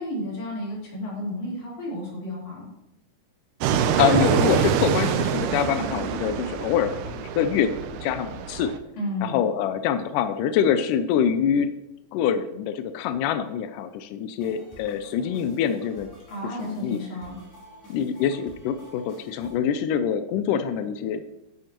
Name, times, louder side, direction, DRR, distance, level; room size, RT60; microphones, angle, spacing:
voice 1, 0.0-2.7 9.0-9.4 16.3-17.4, left 1 dB, 50° left, -5 dB, 4.8 m, -32 dB
voice 2, 3.6-8.7 9.2-11.7 12.1-16.1 16.6-17.0 17.9-21.2, left 8 dB, 85° left, 10 dB, 1.9 m, -25 dB
Fixed-wing aircraft airplane, 3.6-8.8, right 8 dB, 85° right, 1.8 m, -25 dB
sound 1, 14.4-19.6, left 1 dB, 5° left, 3.1 m, -50 dB
10.5 x 10.0 x 3.0 m, 0.88 s
omnidirectional pair, 4.3 m